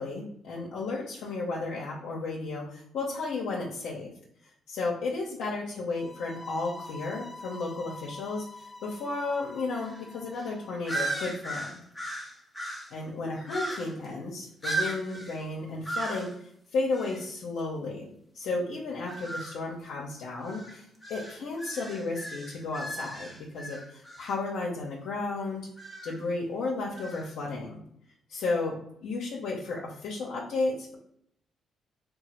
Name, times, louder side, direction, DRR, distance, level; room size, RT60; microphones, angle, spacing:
voice 1, 0.0-4.1 4.7-8.5 8.8-11.8 12.9-18.1 18.3-25.7 26.0-27.8 28.3-30.9, left 3 dB, 80° left, -4 dB, 0.8 m, -33 dB
sound 1, 5.9-10.9, left 2 dB, 20° left, 0.4 m, -46 dB
sound 2, 9.8-10.0 10.3-10.5 10.9-13.0 13.5-14.1 14.6-15.4 15.8-16.3 16.9-17.2 19.0-19.6 20.4-24.4 25.8-26.2 26.9-27.3, right 2 dB, 5° left, 0.9 m, -36 dB
3.7 x 2.3 x 4.3 m, 0.70 s
cardioid pair, 90°, 0 cm